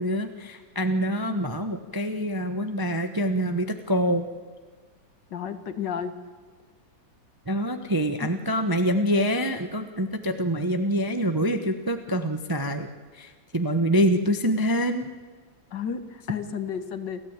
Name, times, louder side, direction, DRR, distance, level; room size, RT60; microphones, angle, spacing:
voice 1, 0.0-4.3 7.5-12.9 13.1-15.1, equal, 15° right, 7 dB, 0.7 m, -25 dB
voice 2, 5.3-6.1 8.2-8.3 15.7-17.2, left 7 dB, 65° left, 10 dB, 1.9 m, -32 dB
29.5 x 13.5 x 8.9 m, 1.4 s
omnidirectional pair, 2.2 m